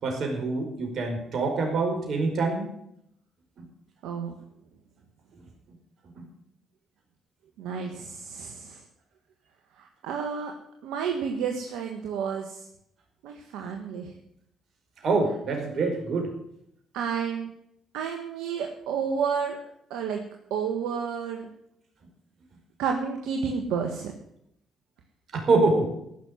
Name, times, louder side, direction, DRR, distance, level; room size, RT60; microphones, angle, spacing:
voice 1, 0.0-2.7 3.6-3.7 6.1-6.3 15.0-16.3 25.3-25.9, right 3 dB, 60° right, 3 dB, 4.9 m, -25 dB
voice 2, 4.0-4.3 7.6-8.8 9.8-10.5 10.8-12.6 13.2-14.1 16.9-17.5 17.9-19.6 19.9-20.2 20.5-21.5 22.8-24.1, right 6 dB, 80° right, 3 dB, 1.4 m, -30 dB
15.0 x 6.5 x 9.5 m, 0.73 s
supercardioid pair, 60°, 0 cm